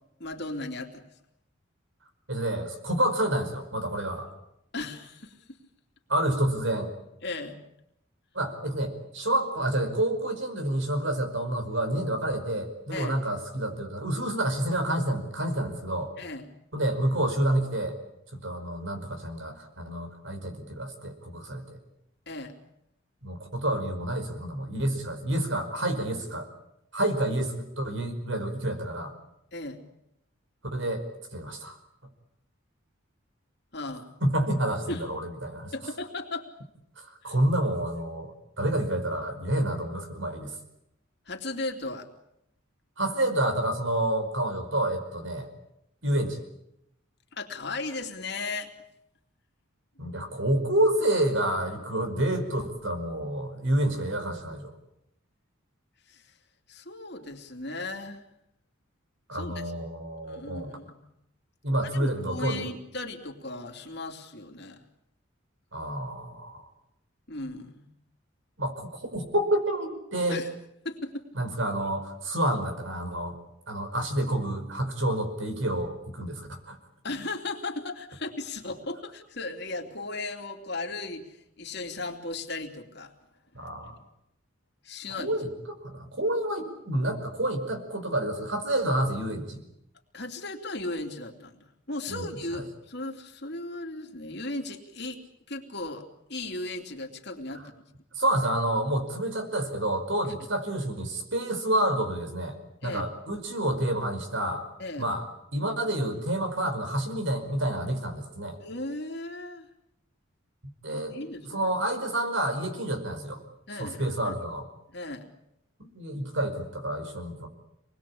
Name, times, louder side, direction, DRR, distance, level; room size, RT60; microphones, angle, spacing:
voice 1, 0.2-1.1 4.7-5.6 7.2-7.6 12.9-13.2 16.2-16.5 22.3-22.5 29.5-29.8 33.7-34.1 34.9-35.1 35.7-36.5 37.2-37.3 41.3-42.1 47.3-48.7 56.1-56.3 56.7-58.2 59.3-59.6 60.3-61.0 61.8-64.8 67.3-67.8 70.3-70.5 70.8-71.2 77.0-83.1 83.8-83.9 84.8-85.4 90.1-95.2 95.5-97.7 102.8-103.1 104.8-105.1 108.6-109.7 110.9-111.7 113.7-114.3 114.9-115.3, left 2 dB, 55° left, 3 dB, 3.2 m, -36 dB
voice 2, 2.3-4.3 6.1-6.9 8.3-16.1 16.7-18.0 18.4-21.8 23.2-26.5 26.9-29.1 30.7-31.0 31.3-31.8 34.2-35.7 37.0-40.5 43.0-45.5 46.0-46.4 50.0-54.7 59.3-60.8 61.6-62.6 65.7-66.7 68.6-70.4 71.3-73.4 73.7-76.8 83.6-84.0 85.2-85.5 85.8-89.6 92.1-92.3 92.5-92.6 98.2-102.6 102.8-104.6 105.0-105.2 105.5-108.6 110.8-111.2 111.5-113.4 113.8-114.7 115.9-117.5, right 1 dB, 65° right, 7 dB, 5.3 m, -29 dB
27.5 x 21.0 x 8.7 m, 0.81 s
head